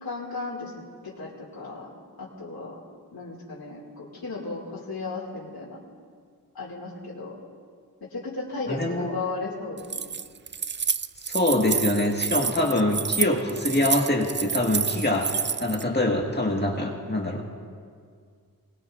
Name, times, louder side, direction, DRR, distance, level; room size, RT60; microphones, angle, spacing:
voice 1, 0.0-1.9 2.2-2.8 3.1-5.8 6.5-7.4 8.0-10.1, left 3 dB, 80° left, -5 dB, 2.5 m, -35 dB
voice 2, 8.7-9.1 11.3-17.4, left 1 dB, 30° left, -1 dB, 1.9 m, -24 dB
Keys jangling, 9.8-15.8, right 6 dB, 30° right, 0.4 m, -28 dB
24.5 x 20.0 x 2.6 m, 2.1 s
wide cardioid pair, 70°, 36 cm